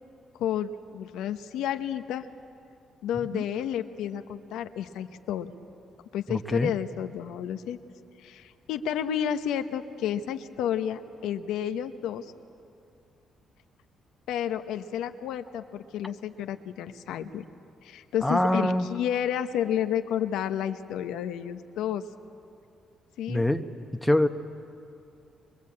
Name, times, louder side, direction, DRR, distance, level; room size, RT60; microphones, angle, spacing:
voice 1, 0.4-2.3 3.0-5.5 6.1-7.8 8.2-12.3 14.3-17.4 17.8-22.0 23.2-23.4, left 9 dB, 90° left, 8 dB, 1.0 m, -31 dB
voice 2, 6.3-6.7 18.2-18.9 23.3-23.7 24.0-24.3, left 1 dB, 5° left, 7 dB, 1.1 m, -24 dB
23.5 x 23.0 x 8.6 m, 2.6 s
cardioid pair, 90°, 0 cm